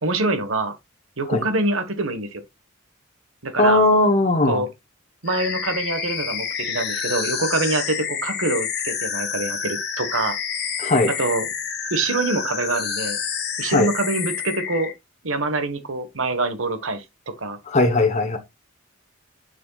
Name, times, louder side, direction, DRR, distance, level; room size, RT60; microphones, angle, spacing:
voice 1, 0.0-0.8 1.2-2.4 3.4-3.8 4.4-4.7 5.2-10.4 11.2-11.5 11.9-13.2 13.6-14.9 15.2-17.0 17.4-17.6, right 2 dB, 75° right, 1.4 m, -25 dB
voice 2, 3.6-4.6 10.8-11.1 13.7-13.9 17.7-18.4, left 2 dB, 35° left, 1.0 m, -18 dB
sound 1, 5.3-14.9, left 7 dB, 50° left, 1.6 m, -28 dB
6.9 x 6.6 x 2.4 m
head